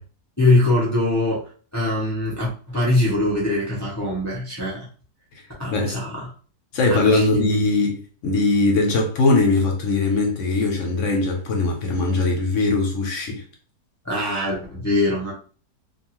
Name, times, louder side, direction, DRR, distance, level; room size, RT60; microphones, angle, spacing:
voice 1, 0.4-4.9 5.6-6.3 6.9-7.5 14.0-15.3, left 1 dB, 25° left, 0.3 m, -22 dB
voice 2, 6.7-13.4, left 3 dB, 65° left, 0.8 m, -20 dB
2.6 x 2.3 x 2.9 m
omnidirectional pair, 1.7 m